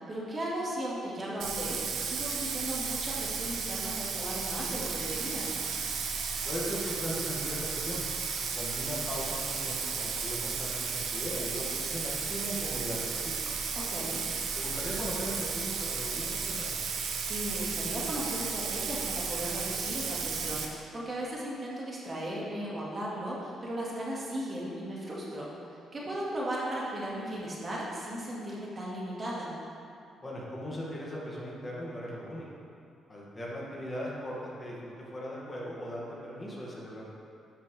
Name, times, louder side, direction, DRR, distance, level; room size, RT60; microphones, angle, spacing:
voice 1, 0.0-5.5 13.8-14.2 17.2-29.5, right 1 dB, 35° right, -5 dB, 1.9 m, -36 dB
Bathtub (filling or washing), 1.4-20.7, right 5 dB, 75° right, 0.9 m, -34 dB
voice 2, 6.4-8.1 8.5-13.6 14.5-16.7 30.2-32.4 33.1-37.1, equal, 25° left, -5 dB, 2.0 m, -38 dB
11.5 x 6.0 x 3.4 m, 2.5 s
cardioid pair, 90°, 0 cm